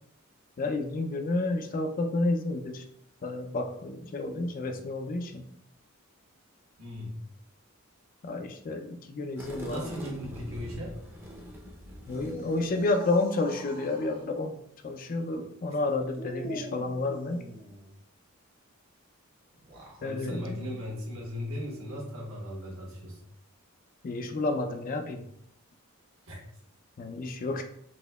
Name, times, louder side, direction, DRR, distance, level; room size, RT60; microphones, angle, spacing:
voice 1, 0.6-2.8 3.2-5.4 8.2-9.8 12.1-14.6 14.8-17.4 20.0-20.7 24.0-25.2 27.0-27.6, left 2 dB, 40° left, 6 dB, 0.3 m, -30 dB
voice 2, 6.8-7.2 9.6-10.9 20.0-23.2 26.3-26.4, left 1 dB, 75° right, -2 dB, 1.2 m, -37 dB
sound 1, 9.4-13.4, equal, 10° right, 0.5 m, -43 dB
sound 2, 12.0-14.3 16.1-17.9 19.5-20.1, equal, 45° right, 0.9 m, -43 dB
4.1 x 2.7 x 2.2 m, 0.72 s
head